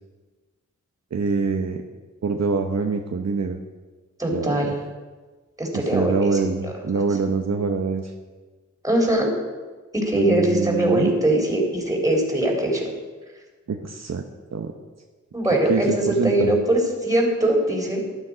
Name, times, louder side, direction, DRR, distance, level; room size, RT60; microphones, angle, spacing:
voice 1, 1.1-1.8 2.2-3.6 4.3-4.7 5.7-8.1 10.1-11.1 13.7-14.2 14.5-14.7 15.7-16.5, right 4 dB, 60° right, 4 dB, 1.0 m, -25 dB
voice 2, 4.2-4.7 5.6-6.3 6.6-6.7 8.8-9.3 9.9-12.8 15.3-18.1, right 1 dB, 10° right, -1 dB, 4.3 m, -21 dB
12.5 x 12.0 x 5.1 m, 1.3 s
wide cardioid pair, 70°, 29 cm